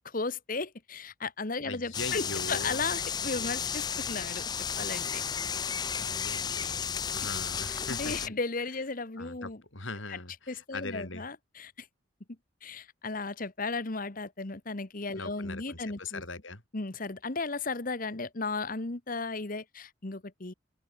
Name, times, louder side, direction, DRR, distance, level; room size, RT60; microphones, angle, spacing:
voice 1, 0.0-4.4 4.8-5.2 6.6-6.7 7.7-9.6 10.1-10.2 10.5-11.7 12.6-16.2 16.7-20.5, left 3 dB, 45° left, 1.2 m, -35 dB
voice 2, 1.6-2.8 5.9-8.3 9.2-11.2 15.1-16.6, left 3 dB, 70° left, 6.4 m, -41 dB
sound 1, 1.9-8.3, left 7 dB, 20° left, 0.4 m, -33 dB
open air
head